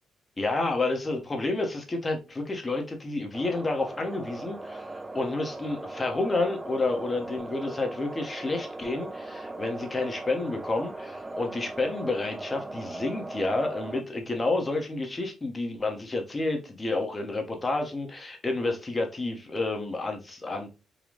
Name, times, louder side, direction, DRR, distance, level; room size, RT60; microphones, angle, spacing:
voice 1, 0.4-20.7, left 2 dB, 25° left, 1.0 m, -30 dB
sound 1, 3.3-14.0, right 2 dB, 15° right, 0.4 m, -39 dB
3.8 x 2.3 x 3.2 m
cardioid pair, 90°, 0 cm